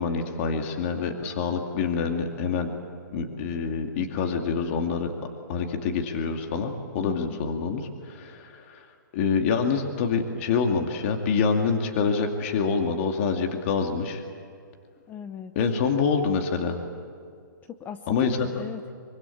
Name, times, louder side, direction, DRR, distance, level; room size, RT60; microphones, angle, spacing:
voice 1, 0.0-2.7 3.1-5.1 5.5-8.9 9.1-14.2 15.6-16.8 18.1-18.5, left 5 dB, 40° left, 4 dB, 2.4 m, -26 dB
voice 2, 7.0-7.4 15.1-15.5 17.7-18.9, left 8 dB, 15° left, 10 dB, 0.7 m, -38 dB
25.0 x 24.5 x 8.6 m, 2.3 s
hypercardioid pair, 150°, 11 cm